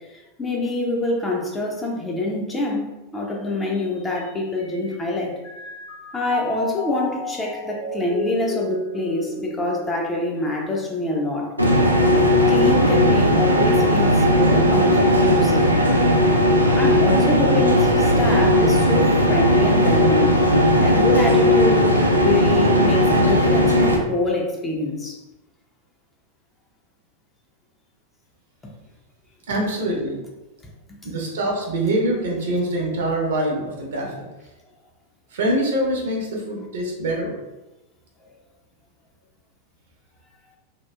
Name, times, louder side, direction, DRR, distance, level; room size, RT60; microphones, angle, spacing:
voice 1, 0.0-5.4 6.1-11.5 12.1-15.8 16.8-20.4 20.8-25.2 29.5-29.6, left 2 dB, 15° left, -1 dB, 0.5 m, -26 dB
Mallet percussion, 4.1-5.1 5.4-10.9, left 2 dB, 65° left, 1.1 m, -33 dB
sound 1, 11.6-24.0, equal, 85° right, 0.4 m, -17 dB
voice 2, 29.5-30.2 31.1-34.3 35.3-37.4, right 1 dB, 60° right, -2 dB, 0.7 m, -24 dB
2.9 x 2.3 x 2.2 m, 1.0 s
figure-of-eight pair, 90°, 0 cm